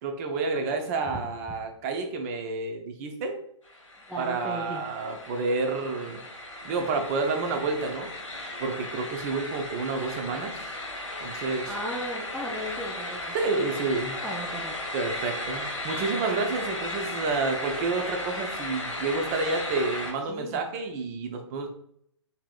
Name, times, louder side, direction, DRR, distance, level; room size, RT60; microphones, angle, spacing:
voice 1, 0.0-3.4 4.2-6.2 6.6-8.1 8.6-10.6 11.2-11.7 13.3-14.2 14.9-21.7, right 3 dB, 30° right, 5 dB, 0.7 m, -29 dB
sound 1, 3.6-20.1, left 1 dB, 90° left, 1.6 m, -36 dB
voice 2, 4.1-4.8 11.7-13.4 14.2-14.7 20.3-20.6, right 1 dB, ahead, -3 dB, 0.3 m, -36 dB
5.7 x 3.6 x 2.4 m, 0.69 s
figure-of-eight pair, 130°, 16 cm